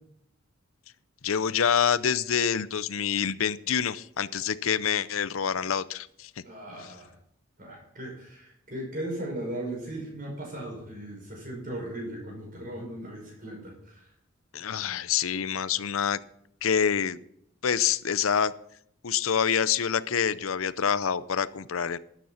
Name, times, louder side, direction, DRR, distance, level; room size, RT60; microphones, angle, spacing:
voice 1, 1.2-6.3 14.5-16.2 16.6-17.2 17.6-18.5 19.0-22.0, left 7 dB, 90° left, 16 dB, 0.6 m, -26 dB
voice 2, 6.4-7.1 7.6-14.1, right 1 dB, 40° right, 0 dB, 5.8 m, -37 dB
12.5 x 9.2 x 5.7 m, 0.70 s
head